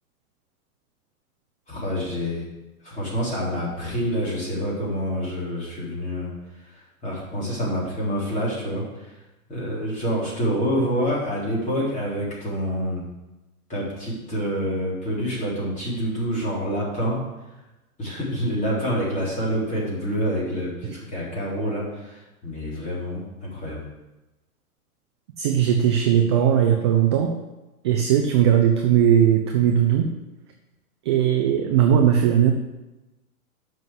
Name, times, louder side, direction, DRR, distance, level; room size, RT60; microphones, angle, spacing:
voice 1, 1.7-2.4 2.8-9.2 9.5-13.0 13.7-17.2 18.0-23.8, equal, 15° left, -6 dB, 3.8 m, -27 dB
voice 2, 25.4-27.3 27.8-30.1 31.0-32.5, right 9 dB, 20° right, 3 dB, 0.4 m, -18 dB
7.5 x 5.9 x 7.8 m, 1.0 s
hypercardioid pair, 145°, 44 cm